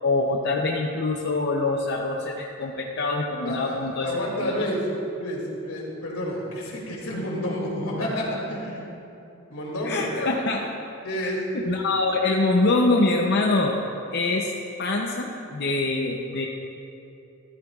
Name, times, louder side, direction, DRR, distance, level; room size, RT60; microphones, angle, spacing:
voice 1, 0.0-4.1 4.4-4.7 9.8-10.7 11.5-13.8 14.1-14.5 14.8-16.5, left 2 dB, 50° left, 0 dB, 0.6 m, -24 dB
voice 2, 3.4-4.8 5.2-8.9 9.5-10.1 11.0-11.4, equal, 80° left, -3 dB, 2.4 m, -30 dB
13.5 x 13.0 x 2.4 m, 2.8 s
head